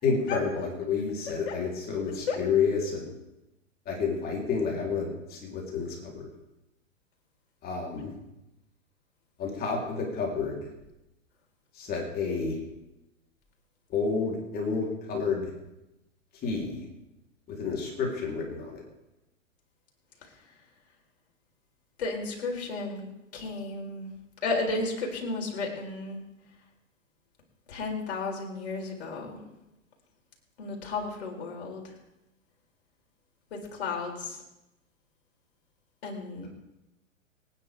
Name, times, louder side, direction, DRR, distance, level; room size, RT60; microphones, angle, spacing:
voice 1, 0.0-3.1 3.9-6.3 7.6-8.1 9.4-10.7 11.8-12.6 13.9-15.5 16.4-16.9 17.5-18.8, left 5 dB, 25° left, -1 dB, 3.5 m, -30 dB
voice 2, 22.0-23.1 23.3-24.2 24.4-26.2 27.7-29.4 30.6-31.9 33.7-34.4 36.0-36.5, left 3 dB, 55° left, 0 dB, 4.2 m, -33 dB
25.0 x 9.8 x 3.5 m, 0.91 s
figure-of-eight pair, 105°, 39 cm